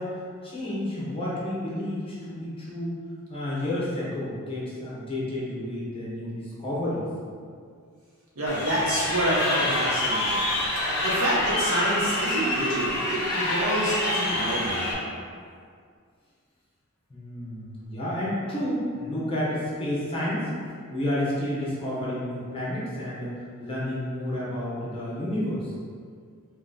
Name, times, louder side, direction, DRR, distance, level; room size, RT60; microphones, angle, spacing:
voice 1, 0.0-2.9 3.3-7.0 17.1-20.5 20.9-23.3 23.6-25.7, left 1 dB, 25° left, -8 dB, 1.0 m, -30 dB
voice 2, 8.3-15.1, right 1 dB, 75° right, -7 dB, 1.2 m, -28 dB
Crowd, 8.5-14.9, left 1 dB, 50° left, 0.8 m, -27 dB
3.1 x 3.0 x 3.9 m, 2.1 s
head